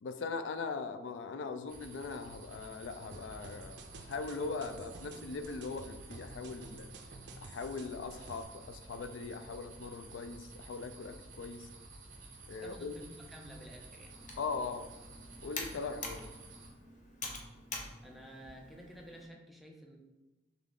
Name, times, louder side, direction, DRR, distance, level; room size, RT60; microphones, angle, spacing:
voice 1, 0.0-6.9 7.4-11.7 12.5-12.9 14.4-14.9 15.4-16.3, left 4 dB, 75° left, 9 dB, 0.4 m, -40 dB
sound 1, 1.7-16.7, right 3 dB, 45° right, 0.9 m, -52 dB
sound 2, 3.1-8.4, right 3 dB, 60° right, 0.4 m, -52 dB
voice 2, 12.6-14.1 18.0-20.0, equal, ahead, -1 dB, 0.5 m, -51 dB
Computer keyboard, 14.1-19.3, left 3 dB, 45° left, 0.7 m, -46 dB
3.7 x 3.4 x 3.6 m, 1.1 s
head